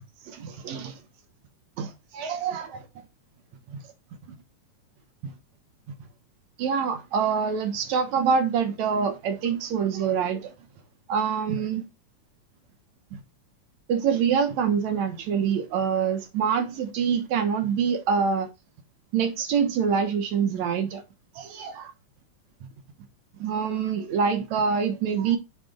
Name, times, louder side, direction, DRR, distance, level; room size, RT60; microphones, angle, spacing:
voice 1, 0.3-1.0 1.8-2.8 3.7-3.8 5.2-5.3 6.6-10.5 11.1-11.9 13.1-13.2 13.9-18.5 19.1-21.0 21.4-21.9 23.4-25.4, right 6 dB, 70° right, 2.3 m, -25 dB
9.0 x 6.4 x 2.3 m
omnidirectional pair, 3.5 m